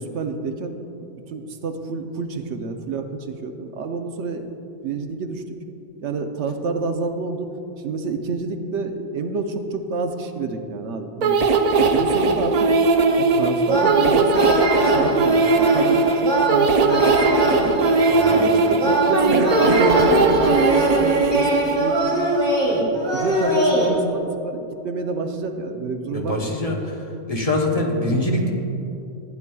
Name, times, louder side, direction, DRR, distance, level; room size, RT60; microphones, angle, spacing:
voice 1, 0.0-4.5 4.8-5.4 6.0-7.5 7.8-11.4 11.8-12.7 13.2-17.9 18.3-22.0 22.6-26.6, right 4 dB, 80° right, 6 dB, 1.0 m, -28 dB
sound 1, 11.2-21.8, right 3 dB, 55° right, 0.4 m, -19 dB
sound 2, 13.7-23.9, right 1 dB, 20° right, 2.1 m, -22 dB
voice 2, 26.1-26.8 27.3-28.5, left 1 dB, 35° left, -1 dB, 1.0 m, -23 dB
14.5 x 9.4 x 2.3 m, 2.8 s
omnidirectional pair, 1.1 m